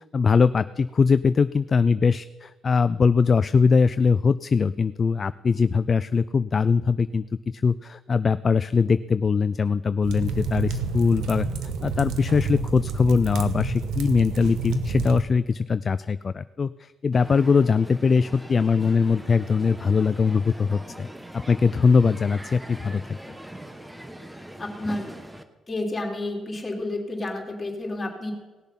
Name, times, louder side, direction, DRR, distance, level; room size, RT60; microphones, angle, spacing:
voice 1, 0.1-7.2 7.5-11.5 11.8-21.1 21.3-23.2, left 5 dB, 40° left, 14 dB, 0.3 m, -21 dB
sound 1, 10.0-15.2, right 4 dB, 85° right, 1.1 m, -29 dB
Crowd, 17.1-25.4, right 1 dB, 10° right, 1.1 m, -41 dB
voice 2, 24.6-25.1 25.7-28.3, left 2 dB, 25° left, 0 dB, 3.1 m, -30 dB
18.0 x 6.9 x 5.8 m, 1.2 s
cardioid pair, 90°, 0 cm